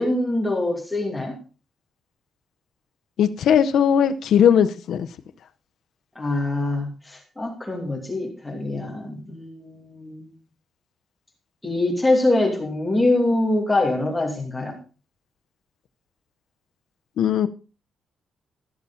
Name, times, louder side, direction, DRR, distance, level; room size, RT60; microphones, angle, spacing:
voice 1, 0.0-1.4 6.2-10.3 11.6-14.8, left 2 dB, 5° left, 2.6 m, -24 dB
voice 2, 3.2-5.1 17.2-17.5, left 8 dB, 70° left, 0.7 m, -18 dB
14.0 x 7.1 x 4.1 m
wide cardioid pair, 165°, 0 cm